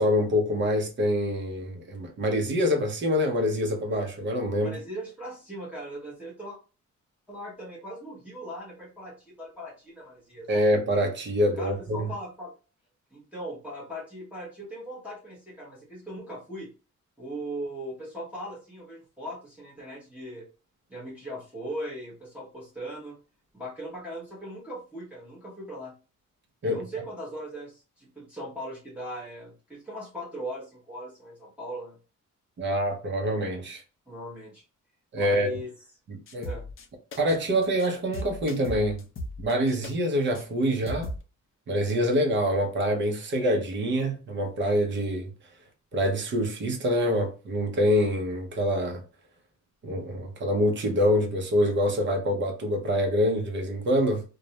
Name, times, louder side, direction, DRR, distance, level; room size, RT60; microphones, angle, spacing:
voice 1, 0.0-4.8 10.5-12.1 26.6-26.8 32.6-33.8 35.1-35.5 36.1-36.5 37.2-39.0 39.4-41.1 41.7-45.3 45.9-49.0 49.8-54.2, equal, 40° right, 0.6 m, -25 dB
voice 2, 4.6-6.6 7.3-10.6 11.6-12.5 13.1-16.7 17.2-20.5 20.9-23.2 23.5-25.9 26.6-32.0 34.1-34.6 35.2-35.7 36.4-36.7, equal, 5° right, 0.7 m, -39 dB
sound 1, 36.3-36.9 37.1-37.4 37.6-37.9 38.1-39.9 40.3-40.4 40.9-41.2, left 1 dB, 45° left, 0.4 m, -37 dB
2.3 x 2.0 x 2.7 m
wide cardioid pair, 165°, 31 cm